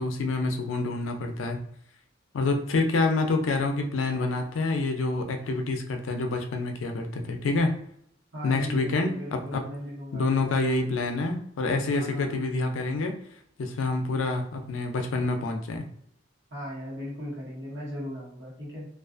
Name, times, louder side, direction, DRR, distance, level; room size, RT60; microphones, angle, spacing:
voice 1, 0.0-1.6 2.3-7.7 8.4-9.6 10.1-13.2 13.6-15.8, left 3 dB, 85° left, 5 dB, 0.4 m, -27 dB
voice 2, 8.3-10.9 11.9-12.3 16.5-18.9, equal, 65° right, -7 dB, 1.1 m, -38 dB
2.4 x 2.3 x 2.4 m, 0.67 s
head